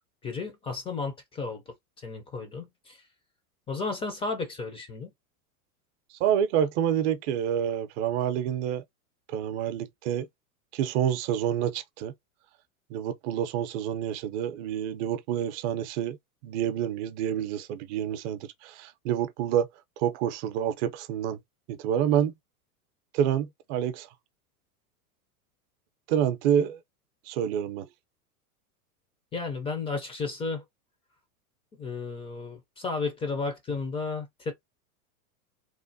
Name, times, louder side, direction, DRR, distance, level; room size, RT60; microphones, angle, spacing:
voice 1, 0.2-3.0 3.7-5.1 29.3-30.6 31.8-34.5, left 4 dB, 15° left, 0.4 m, -33 dB
voice 2, 6.2-8.8 9.3-10.3 10.7-12.1 12.9-16.2 16.4-19.7 20.0-21.4 21.7-22.3 23.1-24.1 26.1-26.8 27.3-27.9, right 9 dB, 50° right, 0.6 m, -28 dB
3.1 x 2.1 x 2.6 m
hypercardioid pair, 120°, 45 cm